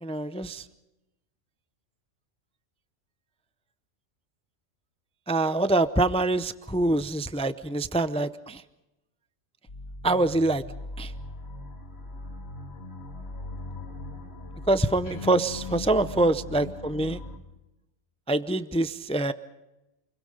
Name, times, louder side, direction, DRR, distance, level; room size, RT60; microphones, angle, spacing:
voice 1, 0.0-0.6 5.3-8.6 10.0-10.6 11.0-11.1 14.7-17.2 18.3-19.3, right 2 dB, 10° left, 12 dB, 0.4 m, -25 dB
sound 1, 9.7-17.4, left 2 dB, 55° left, 2.4 m, -39 dB
29.0 x 22.5 x 5.1 m, 0.97 s
omnidirectional pair, 1.3 m